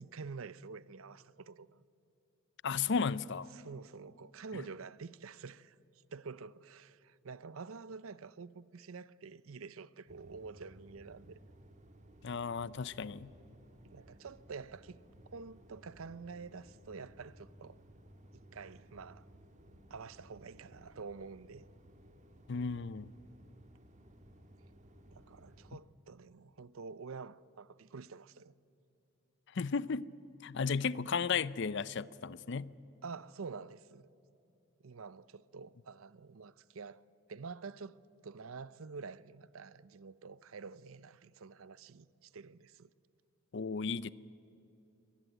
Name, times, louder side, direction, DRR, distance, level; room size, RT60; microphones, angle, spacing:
voice 1, 0.0-1.8 3.5-5.8 6.1-11.4 13.8-15.0 15.3-17.8 18.3-19.3 19.9-21.7 25.1-28.5 33.0-34.1 34.8-37.0 37.3-38.0 38.2-42.9, right 4 dB, 80° right, 0.6 m, -48 dB
voice 2, 2.6-3.5 12.2-13.3 22.5-23.1 29.5-30.1 30.4-32.7 43.5-44.1, left 5 dB, 55° left, 0.5 m, -34 dB
sound 1, 10.1-25.8, equal, 35° right, 1.6 m, -59 dB
24.0 x 19.0 x 9.1 m
head